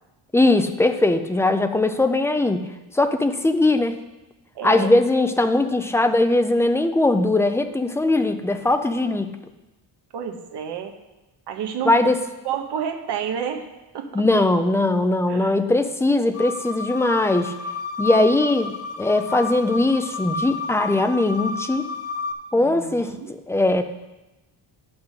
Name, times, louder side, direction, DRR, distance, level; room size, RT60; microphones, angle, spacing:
voice 1, 0.3-2.7 2.9-4.0 4.6-9.3 11.8-12.2 14.1-17.5 18.0-21.8 22.5-23.8, left 2 dB, 5° left, 7 dB, 0.3 m, -20 dB
voice 2, 4.5-4.9 10.1-10.9 11.5-11.9 12.4-13.7 13.9-14.2 15.3-15.6 22.5-23.3, right 8 dB, 70° right, 4 dB, 1.2 m, -30 dB
sound 1, 16.3-22.3, left 4 dB, 35° left, 0.7 m, -31 dB
9.8 x 6.0 x 6.4 m, 1.0 s
cardioid pair, 180°, 42 cm